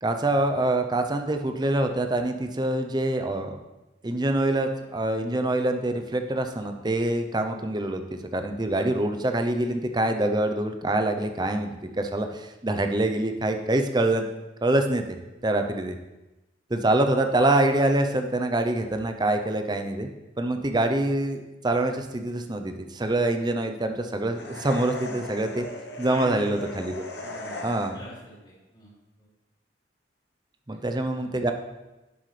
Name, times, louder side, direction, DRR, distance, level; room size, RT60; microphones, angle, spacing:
voice 1, 0.0-3.6 4.0-14.2 14.6-15.0 15.4-16.0 16.7-25.7 26.0-27.1 27.6-28.0 30.7-31.5, right 1 dB, 20° right, 6 dB, 0.6 m, -25 dB
sound 1, 24.3-28.2, left 1 dB, 60° left, 1.0 m, -38 dB
voice 2, 26.1-26.5 27.2-27.6 27.9-28.9 29.2-29.3 30.9-31.2, left 1 dB, 25° left, -7 dB, 3.2 m, -41 dB
11.0 x 7.8 x 3.3 m, 1.0 s
head